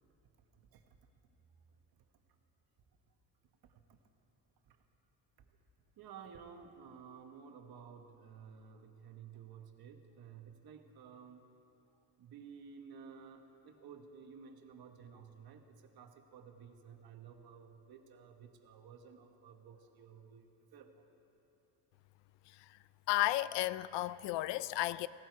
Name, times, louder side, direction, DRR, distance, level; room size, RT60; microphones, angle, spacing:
voice 1, 3.6-4.0 4.7-4.8 5.4-5.5 6.0-11.4 12.2-21.0, right 6 dB, 60° right, 1.4 m, -54 dB
voice 2, 23.1-25.1, left 16 dB, 90° left, 0.5 m, -33 dB
17.5 x 17.0 x 4.7 m
cardioid pair, 130°, 41 cm